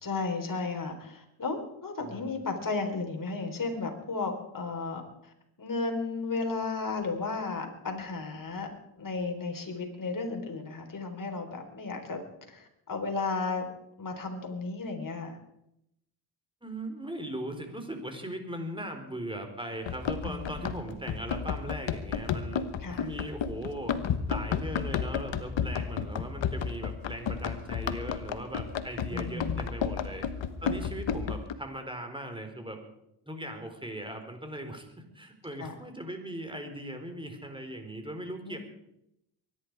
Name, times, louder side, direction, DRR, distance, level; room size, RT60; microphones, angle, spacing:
voice 1, 0.0-5.3 5.6-8.7 9.0-12.2 12.5-13.7 14.0-15.4 20.2-20.5 22.8-23.1 29.1-29.6 35.6-35.7 38.4-38.6, left 3 dB, 40° left, 3 dB, 4.1 m, -34 dB
voice 2, 16.6-30.3 30.6-32.8 33.3-38.6, right 1 dB, 10° right, 5 dB, 4.1 m, -39 dB
Run, 19.8-31.5, left 7 dB, 65° left, 1.3 m, -32 dB
23.5 x 11.0 x 4.8 m, 0.80 s
cardioid pair, 60°, 48 cm